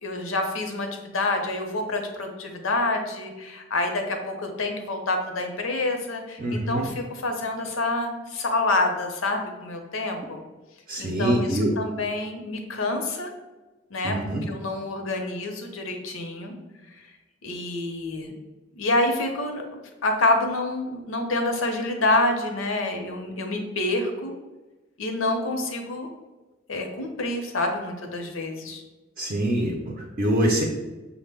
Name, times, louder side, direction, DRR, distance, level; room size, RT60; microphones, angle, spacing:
voice 1, 0.0-10.4 11.0-13.3 13.9-14.2 14.5-16.5 17.4-18.3 18.8-19.6 20.0-24.3 25.0-26.1 26.7-28.8, left 2 dB, 85° left, 4 dB, 0.7 m, -27 dB
voice 2, 6.4-6.9 10.9-11.8 14.0-14.5 29.2-30.6, right 1 dB, 40° right, 0 dB, 0.5 m, -24 dB
6.1 x 2.1 x 3.4 m, 1.1 s
head